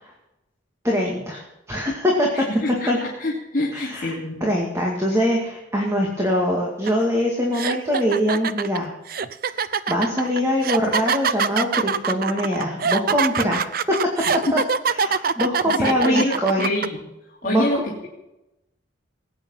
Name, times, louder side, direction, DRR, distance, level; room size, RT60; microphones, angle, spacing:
voice 1, 0.8-2.3 2.9-3.0 3.7-4.1 4.4-8.9 9.9-13.7 14.5-14.6 15.0-16.7 17.4-17.7, equal, 15° right, -1 dB, 2.2 m, -23 dB
voice 2, 2.3-4.5 14.3-14.6 15.6-17.0 17.3-18.1, left 1 dB, 45° left, -5 dB, 2.8 m, -26 dB
sound 1, 6.9-7.0 7.5-16.9, right 6 dB, 50° right, 0.6 m, -23 dB
19.5 x 9.1 x 5.6 m, 0.92 s
head